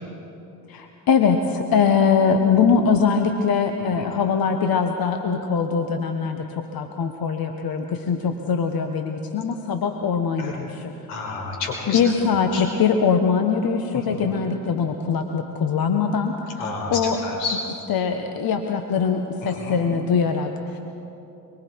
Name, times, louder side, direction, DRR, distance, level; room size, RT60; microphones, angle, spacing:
voice 1, 0.7-10.9 11.9-16.6 16.9-17.2 17.9-20.8, left 6 dB, 45° left, 5 dB, 1.5 m, -22 dB
voice 2, 11.1-12.6 13.9-14.3 16.6-17.6 19.4-19.8, left 3 dB, 75° left, 0 dB, 5.6 m, -31 dB
25.0 x 24.0 x 4.8 m, 3.0 s
hypercardioid pair, 65°, 48 cm